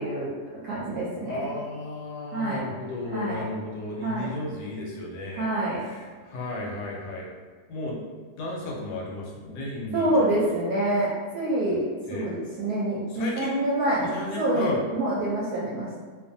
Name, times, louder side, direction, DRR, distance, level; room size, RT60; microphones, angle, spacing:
voice 1, 0.0-1.5 2.3-2.7 3.1-3.4 4.0-4.3 5.3-5.8 9.9-14.1 14.4-16.0, right 1 dB, 70° right, -6 dB, 1.0 m, -27 dB
voice 2, 1.3-5.5 5.8-7.3 7.7-8.0 8.4-10.4 12.1-12.3 13.1-13.7 14.0-14.8, left 2 dB, 75° left, -2 dB, 1.1 m, -34 dB
2.5 x 2.5 x 2.5 m, 1.5 s
omnidirectional pair, 1.8 m